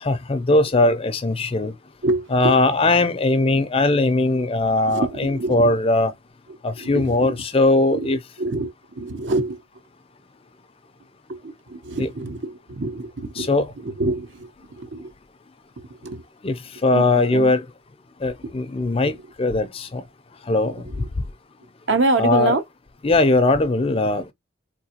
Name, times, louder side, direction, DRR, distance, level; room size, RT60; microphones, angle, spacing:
voice 1, 0.0-1.7 2.3-6.1 6.6-8.2 12.0-12.1 13.4-13.7 16.4-16.6 16.8-17.6 18.2-20.0 20.5-20.8 22.2-22.5 23.0-24.3, left 2 dB, 25° left, 0.4 m, -20 dB
voice 2, 2.0-2.6 4.3-4.5 4.9-5.8 6.7-7.4 7.9-9.6 11.3-15.1 15.8-16.5 16.9-17.5 18.4-18.5 20.9-21.1 21.9-22.6, right 2 dB, 60° right, 0.8 m, -27 dB
3.8 x 2.6 x 2.8 m
head